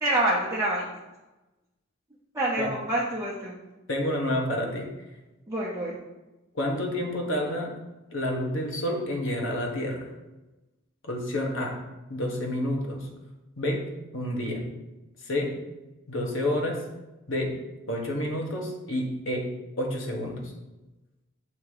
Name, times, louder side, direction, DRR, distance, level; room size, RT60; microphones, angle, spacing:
voice 1, 0.0-0.9 2.3-3.5 5.5-6.0, right 1 dB, 15° right, -5 dB, 0.8 m, -27 dB
voice 2, 3.9-4.9 6.5-7.7 8.1-10.1 11.0-11.8 12.1-13.1 13.6-14.6 15.2-15.6 16.1-16.8 17.3-17.6 17.9-19.5 19.8-20.5, left 1 dB, 65° left, 1 dB, 1.2 m, -29 dB
7.3 x 2.8 x 4.8 m, 1.0 s
head